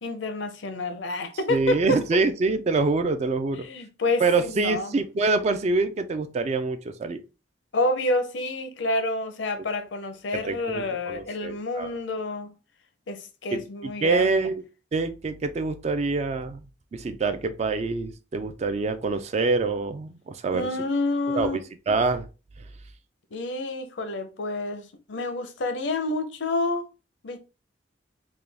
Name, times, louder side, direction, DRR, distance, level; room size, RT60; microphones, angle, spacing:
voice 1, 0.0-2.0 3.6-4.9 7.7-12.5 13.1-14.3 20.5-21.6 23.3-26.9 27.2-27.4, left 2 dB, 75° left, 0.6 m, -28 dB
voice 2, 1.5-3.7 4.2-7.2 10.3-11.9 13.5-14.6 14.9-20.7 21.3-21.6 21.9-22.3, right 3 dB, 35° right, 0.3 m, -26 dB
3.6 x 2.2 x 3.3 m
head